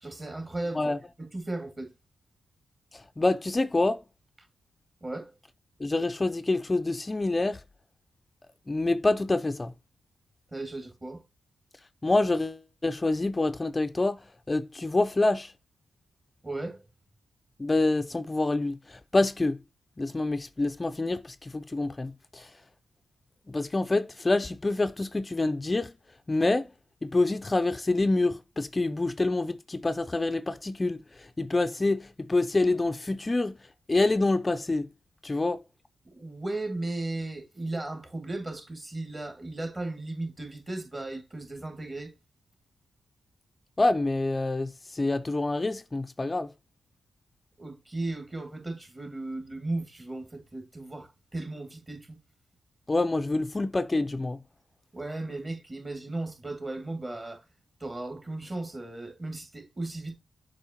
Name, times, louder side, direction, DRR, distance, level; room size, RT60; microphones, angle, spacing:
voice 1, 0.0-0.9 1.2-1.9 5.0-5.3 10.5-11.2 16.4-16.8 36.1-42.1 47.6-52.1 54.9-57.4 57.8-60.1, right 2 dB, 30° right, 2.2 m, -36 dB
voice 2, 2.9-4.0 5.8-7.6 8.7-9.7 12.0-14.2 14.5-15.5 17.6-19.6 20.0-22.5 23.5-25.9 26.3-26.7 27.0-33.6 33.9-34.9 35.2-35.6 43.8-46.5 52.9-54.4, left 2 dB, 30° left, 0.4 m, -27 dB
7.1 x 5.0 x 2.9 m
supercardioid pair, 50°, 0 cm